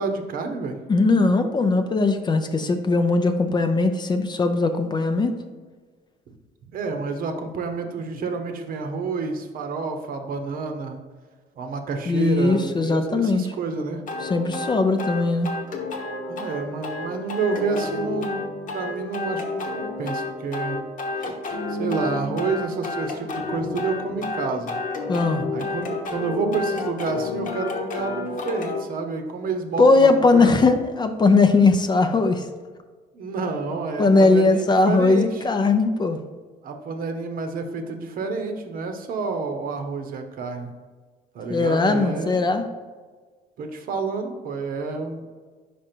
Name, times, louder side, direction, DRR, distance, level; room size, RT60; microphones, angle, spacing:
voice 1, 0.0-0.8 6.7-11.0 11.6-14.0 16.3-18.4 18.7-20.8 21.7-24.7 25.5-30.7 33.1-35.4 36.6-40.7 41.3-42.4 43.6-45.3, right 4 dB, 55° right, 5 dB, 0.9 m, -29 dB
voice 2, 0.9-5.4 12.1-13.4 14.2-15.5 25.1-25.5 29.8-32.5 34.0-36.2 41.5-42.7, left 3 dB, 25° left, 7 dB, 0.5 m, -19 dB
sound 1, 14.1-28.8, left 3 dB, 50° left, 1.0 m, -30 dB
5.1 x 4.8 x 4.4 m, 1.5 s
cardioid pair, 110°, 17 cm